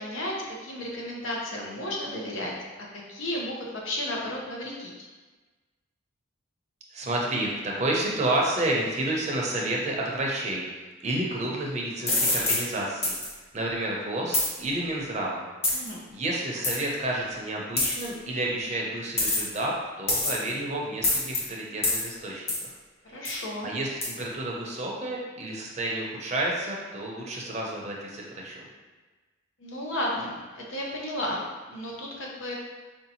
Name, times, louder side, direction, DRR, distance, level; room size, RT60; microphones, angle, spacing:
voice 1, 0.0-2.5 2.8-4.9 15.7-16.0 23.0-23.7 29.6-32.5, left 1 dB, 85° left, -2 dB, 0.8 m, -33 dB
voice 2, 6.9-13.2 13.5-15.4 16.1-22.4 23.1-23.2 23.6-28.7, right 1 dB, 35° right, -2 dB, 0.6 m, -30 dB
sound 1, 12.1-12.6 13.0-13.3 14.3-14.5 15.6-15.9 16.6-16.8 17.8-18.1 19.2-19.6 20.1-20.5 21.0-21.4 21.8-22.0 22.5-22.7 23.3-23.4 24.0-24.1, left 2 dB, 30° left, 0.9 m, -25 dB
4.4 x 2.7 x 2.8 m, 1.3 s
head